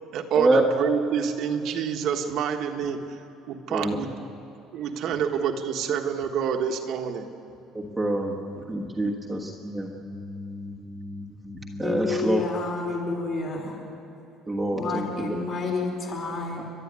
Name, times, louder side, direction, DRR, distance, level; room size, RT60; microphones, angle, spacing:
voice 1, 0.1-3.0 3.5-4.1 4.7-7.3 8.7-8.8, right 7 dB, 50° right, 4 dB, 1.3 m, -27 dB
voice 2, 3.7-4.2 7.7-12.4 14.5-15.4 16.5-16.6, right 1 dB, 5° right, -3 dB, 1.4 m, -28 dB
voice 3, 11.8-13.7 14.7-16.6, left 3 dB, 40° left, 0 dB, 4.7 m, -29 dB
29.5 x 12.0 x 9.6 m, 2.8 s
cardioid pair, 175°, 0 cm